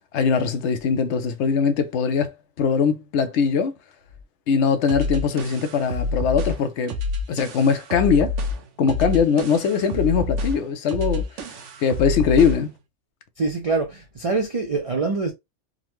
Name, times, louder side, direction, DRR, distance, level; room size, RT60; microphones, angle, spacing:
voice 1, 0.1-3.7 4.5-6.9 7.3-8.3 8.8-11.3 11.8-12.7, left 6 dB, 75° left, 0.9 m, -21 dB
sound 1, 4.9-12.7, left 3 dB, 80° right, 1.0 m, -28 dB
voice 2, 13.4-15.3, right 3 dB, 55° right, 0.4 m, -24 dB
3.7 x 2.1 x 3.0 m
omnidirectional pair, 1.2 m